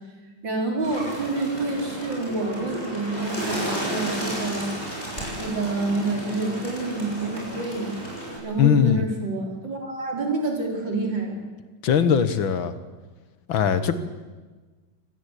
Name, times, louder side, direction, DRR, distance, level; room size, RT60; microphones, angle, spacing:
voice 1, 0.4-4.6 5.4-8.0 8.4-11.4, right 3 dB, 60° right, 2 dB, 5.1 m, -28 dB
Bird, 0.8-8.4, right 1 dB, 30° left, 7.6 m, -32 dB
voice 2, 8.6-9.0 11.8-12.7 13.5-14.0, left 8 dB, 70° left, 12 dB, 2.1 m, -20 dB
25.5 x 19.0 x 8.4 m, 1.3 s
omnidirectional pair, 2.3 m